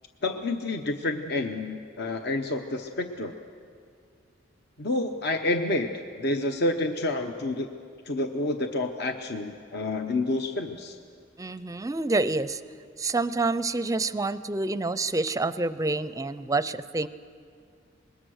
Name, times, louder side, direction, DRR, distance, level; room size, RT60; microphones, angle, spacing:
voice 1, 0.2-3.3 4.8-5.9 6.2-7.7 8.1-11.0, left 2 dB, 60° left, 6 dB, 0.9 m, -29 dB
voice 2, 11.4-12.6 13.0-17.1, right 3 dB, 15° right, 14 dB, 0.5 m, -27 dB
25.0 x 21.0 x 6.4 m, 2.3 s
head